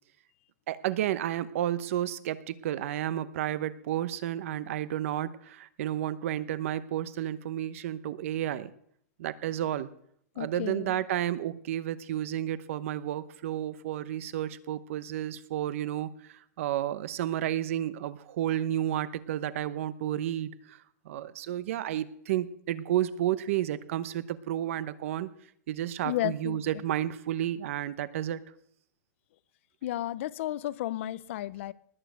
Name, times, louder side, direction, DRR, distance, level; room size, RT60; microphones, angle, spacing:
voice 1, 0.7-8.7 9.2-9.9 10.4-20.8 21.0-25.3 25.7-28.4, right 12 dB, 50° right, 15 dB, 1.0 m, -31 dB
voice 2, 10.4-11.0 26.0-26.6 29.8-31.7, left 13 dB, 50° left, 18 dB, 0.7 m, -33 dB
20.0 x 7.3 x 7.8 m, 0.66 s
supercardioid pair, 175°, 9 cm